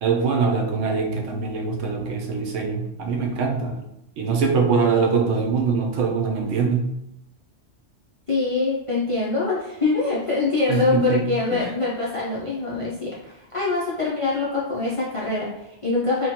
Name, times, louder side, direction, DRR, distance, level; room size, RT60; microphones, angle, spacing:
voice 1, 0.0-3.8 4.2-6.9 10.7-11.7, right 5 dB, 80° right, 2 dB, 0.9 m, -23 dB
voice 2, 8.3-16.3, left 3 dB, 45° left, -8 dB, 0.4 m, -24 dB
3.0 x 2.1 x 2.8 m, 0.84 s
omnidirectional pair, 1.2 m